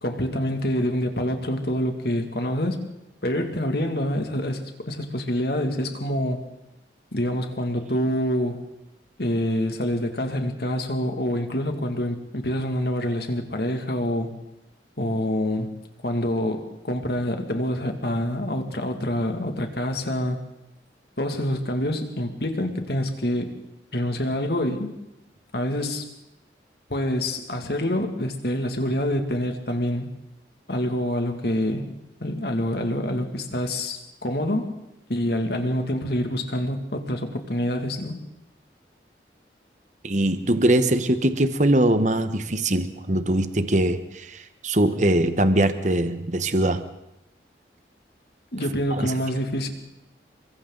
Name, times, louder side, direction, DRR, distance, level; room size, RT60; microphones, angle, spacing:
voice 1, 0.0-2.8 3.2-6.4 7.1-8.6 9.2-14.3 15.0-15.7 16.0-20.4 21.2-23.6 23.9-24.9 25.5-26.1 26.9-30.1 30.7-31.9 32.2-34.7 35.1-38.1 48.5-49.7, equal, 60° left, 5 dB, 2.4 m, -26 dB
voice 2, 40.0-46.8 48.9-49.1, right 1 dB, 40° right, 10 dB, 1.2 m, -22 dB
29.0 x 23.5 x 4.0 m, 0.87 s
head